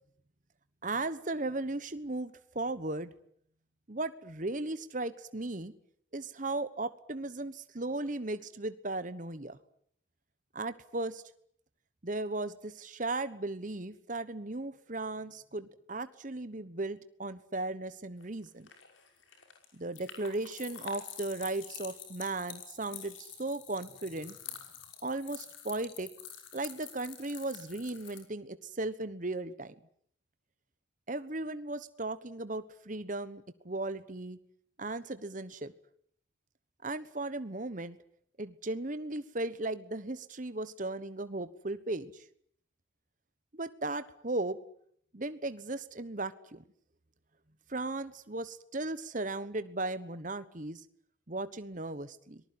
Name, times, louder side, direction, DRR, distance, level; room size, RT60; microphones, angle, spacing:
voice 1, 0.8-3.1 3.9-5.7 6.1-9.6 10.5-11.2 12.0-18.7 19.7-24.4 25.0-26.1 26.5-29.7 31.1-34.4 34.8-35.7 36.8-38.0 38.4-42.2 43.5-44.6 45.1-46.6 47.7-50.8 51.3-52.4, right 2 dB, 40° right, 13 dB, 1.2 m, -36 dB
sound 1, 18.2-28.2, left 8 dB, 75° left, 5.9 m, -47 dB
25.0 x 19.5 x 9.7 m, 0.66 s
head